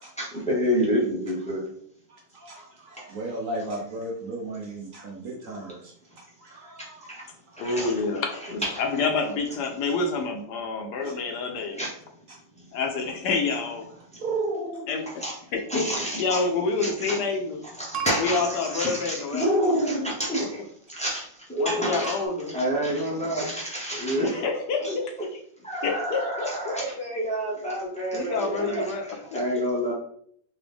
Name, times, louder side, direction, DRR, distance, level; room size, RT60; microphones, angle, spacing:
voice 1, 0.2-1.7 7.1-7.2 7.6-7.9 11.8-11.9 15.2-15.3 15.7-16.5 16.8-17.2 17.8-20.6 20.9-22.2 22.5-24.5 24.8-24.9 25.6-29.9, equal, 5° left, -5 dB, 0.6 m, -28 dB
voice 2, 2.1-7.1 7.5-7.9 11.0-11.2 12.3-12.4 14.2-15.1, right 2 dB, 55° right, -1 dB, 1.0 m, -35 dB
voice 3, 7.6-11.8 12.7-13.9 14.9-15.0 15.5-15.9 16.2-17.6 18.2-19.7 21.6-22.5 24.3-25.1 25.8-26.7 28.1-29.4, left 4 dB, 70° left, 3 dB, 1.2 m, -28 dB
sound 1, 17.9-19.5 22.0-22.3, right 7 dB, 85° right, 0.6 m, -38 dB
4.0 x 2.7 x 3.4 m, 0.63 s
omnidirectional pair, 1.9 m